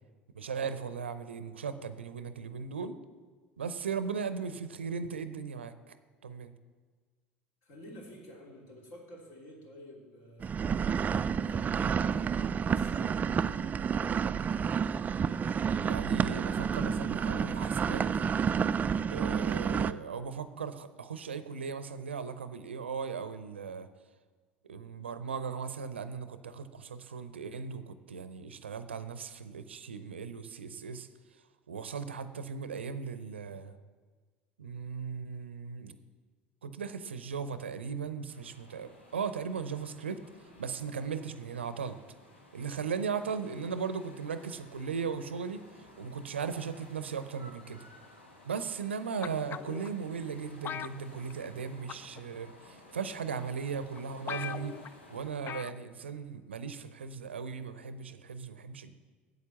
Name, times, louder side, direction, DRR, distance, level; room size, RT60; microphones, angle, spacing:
voice 1, 0.3-3.0 3.6-5.9 6.2-6.5 15.8-18.0 19.1-23.9 24.6-31.1 31.7-33.8 34.6-36.0 36.6-40.2 40.6-42.0 42.5-45.6 46.0-47.8 48.4-54.8 55.1-58.9, right 6 dB, 80° right, 12 dB, 0.6 m, -37 dB
voice 2, 7.6-14.2, equal, 50° left, -1 dB, 3.3 m, -52 dB
sound 1, 10.4-19.9, right 6 dB, 25° right, 0.4 m, -30 dB
sound 2, 38.3-55.3, left 1 dB, 80° left, 1.5 m, -56 dB
sound 3, 49.2-49.9 50.6-51.6 51.9-52.2 53.0-53.1 53.7-53.8 54.0-54.1 54.3-54.9 55.5-55.8 56.1-56.2, left 9 dB, 35° left, 0.4 m, -39 dB
8.9 x 8.3 x 7.1 m, 1.5 s
figure-of-eight pair, 70°, 6 cm